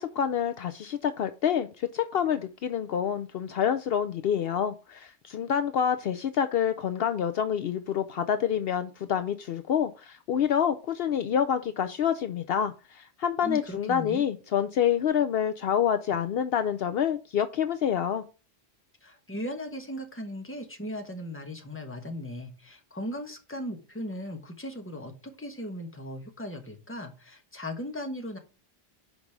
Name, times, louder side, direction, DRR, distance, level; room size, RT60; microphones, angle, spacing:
voice 1, 0.0-18.2, left 8 dB, 70° left, 0.8 m, -27 dB
voice 2, 13.4-14.2 19.0-28.4, equal, 10° left, 1.2 m, -37 dB
5.3 x 5.1 x 5.9 m
omnidirectional pair, 1.1 m